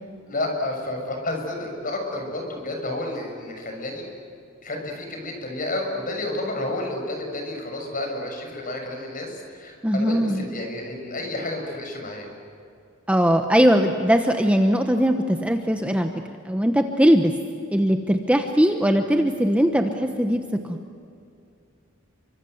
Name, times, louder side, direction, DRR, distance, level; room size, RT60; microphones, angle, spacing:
voice 1, 0.3-4.1 4.6-12.3, left 2 dB, 40° left, 2 dB, 6.7 m, -30 dB
voice 2, 9.8-10.5 13.1-17.3 17.7-20.8, equal, 5° right, 5 dB, 1.1 m, -20 dB
29.0 x 24.5 x 8.0 m, 2.4 s
head